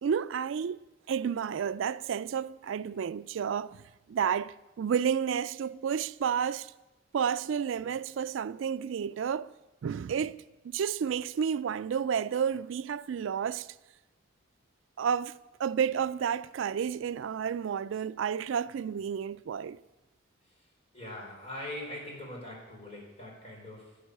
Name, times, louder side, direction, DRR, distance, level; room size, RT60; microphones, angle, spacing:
voice 1, 0.0-0.8 1.1-6.7 7.1-9.5 9.8-10.4 10.6-13.7 15.0-19.8, right 7 dB, 75° right, 0.3 m, -31 dB
voice 2, 20.9-24.0, left 1 dB, 30° left, 4.7 m, -42 dB
12.0 x 10.0 x 8.4 m
head